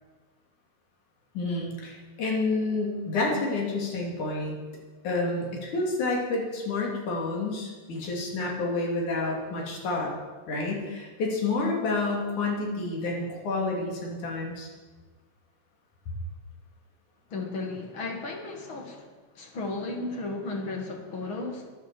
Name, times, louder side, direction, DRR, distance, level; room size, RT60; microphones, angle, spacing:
voice 1, 1.3-4.6 5.0-10.1 10.5-14.7, left 3 dB, 85° left, -1 dB, 4.2 m, -29 dB
voice 2, 17.3-19.1 19.4-21.7, left 3 dB, 45° left, 3 dB, 2.3 m, -34 dB
12.0 x 11.0 x 7.7 m, 1.4 s
omnidirectional pair, 3.4 m